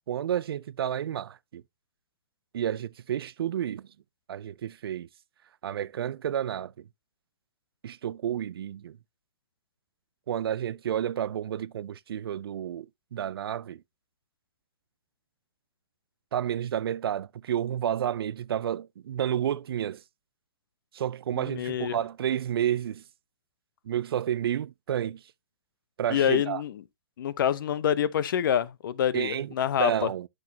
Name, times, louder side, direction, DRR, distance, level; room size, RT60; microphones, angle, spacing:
voice 1, 0.1-1.6 2.5-3.9 4.3-5.1 5.6-6.8 7.8-9.0 10.3-13.8 16.3-20.0 20.9-23.0 23.9-25.2 26.0-26.6 29.1-29.5 29.8-30.3, right 10 dB, 70° right, 0.4 m, -30 dB
voice 2, 21.3-22.0 26.1-26.8 27.2-30.1, left 9 dB, 55° left, 0.6 m, -27 dB
8.5 x 6.2 x 2.7 m
hypercardioid pair, 150°, 13 cm